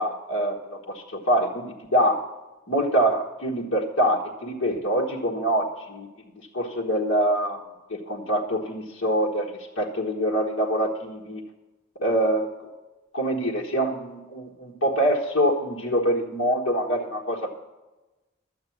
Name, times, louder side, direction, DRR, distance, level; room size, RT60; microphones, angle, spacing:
voice 1, 0.0-2.2 2.7-6.1 6.5-7.6 7.9-11.4 11.9-12.7 13.1-17.5, right 1 dB, 70° left, -3 dB, 1.4 m, -25 dB
13.0 x 8.7 x 5.9 m, 1.1 s
head